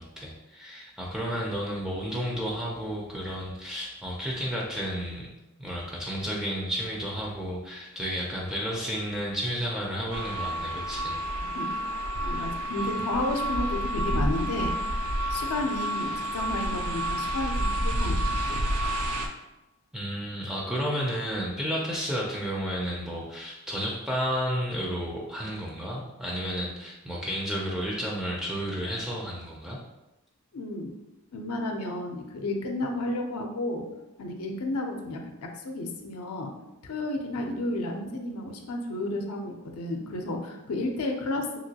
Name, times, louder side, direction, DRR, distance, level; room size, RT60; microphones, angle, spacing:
voice 1, 0.0-5.3 5.6-11.2 19.9-29.8, equal, 5° right, -3 dB, 0.3 m, -32 dB
sound 1, 10.1-19.3, right 1 dB, 70° right, 0.4 m, -29 dB
voice 2, 12.2-14.7 15.3-18.2 18.4-18.6 30.5-30.9 31.3-33.8 34.2-35.2 35.6-36.5 36.8-41.6, left 2 dB, 80° left, 2 dB, 0.5 m, -32 dB
2.9 x 2.8 x 2.7 m, 0.99 s
head